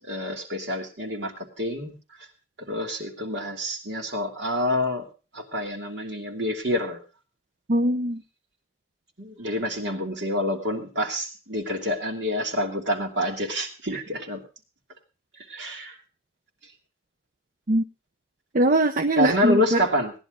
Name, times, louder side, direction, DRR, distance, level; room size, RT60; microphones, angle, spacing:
voice 1, 0.1-1.9 2.6-5.1 5.3-7.0 9.2-14.4 15.5-15.9 19.2-20.1, left 1 dB, 65° right, 1 dB, 2.9 m, -27 dB
voice 2, 7.7-8.2 13.9-14.0 17.7-17.8 18.5-19.8, right 1 dB, 40° right, 6 dB, 0.7 m, -21 dB
18.0 x 10.5 x 3.8 m, 0.32 s
head